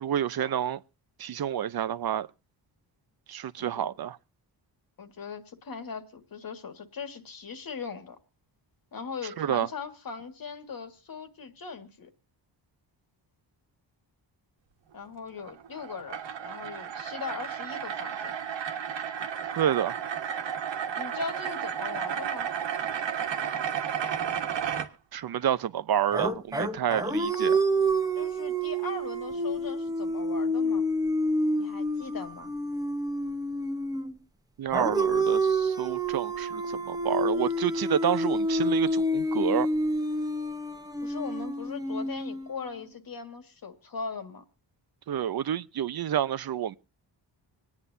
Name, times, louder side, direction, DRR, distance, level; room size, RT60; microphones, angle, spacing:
voice 1, 0.0-0.8 1.2-2.3 3.3-4.2 9.4-9.7 19.6-20.0 25.1-27.6 34.6-39.7 45.1-46.8, right 10 dB, 55° right, 0.7 m, -29 dB
voice 2, 3.6-3.9 5.0-8.2 8.9-12.1 14.9-18.3 21.0-22.5 28.2-30.8 31.6-32.5 41.0-44.4, left 5 dB, 50° left, 1.9 m, -39 dB
sound 1, 15.4-24.9, right 8 dB, 80° right, 1.6 m, -33 dB
sound 2, 26.1-34.2 34.7-42.8, right 1 dB, 10° right, 1.0 m, -28 dB
26.0 x 9.6 x 2.7 m
wide cardioid pair, 130°, 43 cm